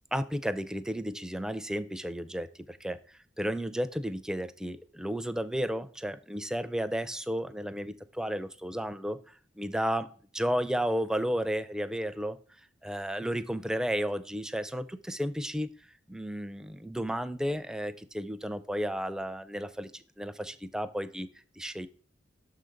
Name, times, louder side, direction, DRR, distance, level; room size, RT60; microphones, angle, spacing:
voice 1, 0.1-10.1 10.3-12.4 12.8-21.9, equal, 5° right, 11 dB, 0.4 m, -33 dB
6.3 x 3.8 x 5.0 m, 0.41 s
head